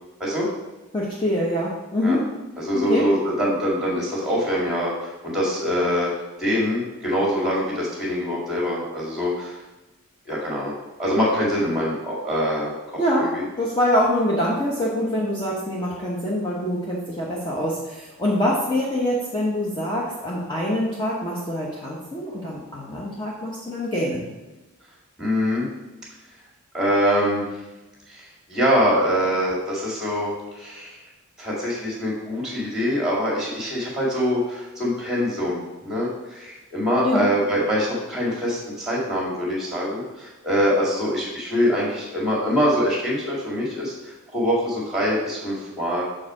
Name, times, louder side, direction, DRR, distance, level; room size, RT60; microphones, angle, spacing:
voice 1, 0.9-2.3 2.7-3.1 13.0-13.3 13.6-24.3 37.0-37.3, left 1 dB, 20° left, -5 dB, 0.9 m, -24 dB
voice 2, 2.6-6.1 6.4-9.6 10.3-10.7 11.0-13.4 25.2-25.7 26.7-27.5 28.1-31.0 31.4-46.0, equal, 5° right, -4 dB, 2.0 m, -24 dB
6.3 x 4.7 x 4.8 m, 1.1 s
head